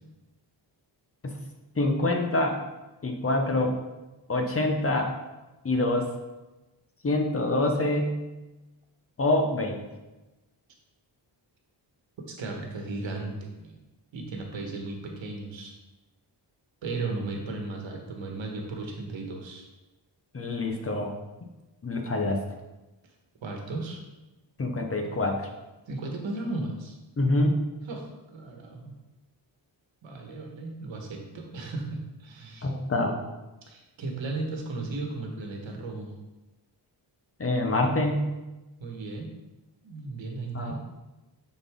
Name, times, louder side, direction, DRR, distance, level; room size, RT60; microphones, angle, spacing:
voice 1, 1.8-2.6 3.0-3.8 4.3-5.1 5.6-6.1 7.0-8.2 9.2-9.8 20.3-21.1 21.8-22.4 24.6-25.5 27.2-27.7 32.6-33.2 37.4-38.3 40.5-40.7, left 2 dB, 30° left, 3 dB, 1.0 m, -26 dB
voice 2, 12.2-13.8 14.1-15.7 16.8-19.7 23.4-24.0 25.9-26.9 27.9-28.9 30.0-32.7 33.7-36.1 38.8-39.3 39.8-40.7, right 3 dB, 85° right, 2 dB, 1.4 m, -35 dB
9.7 x 4.3 x 3.6 m, 1.1 s
wide cardioid pair, 130°, 45 cm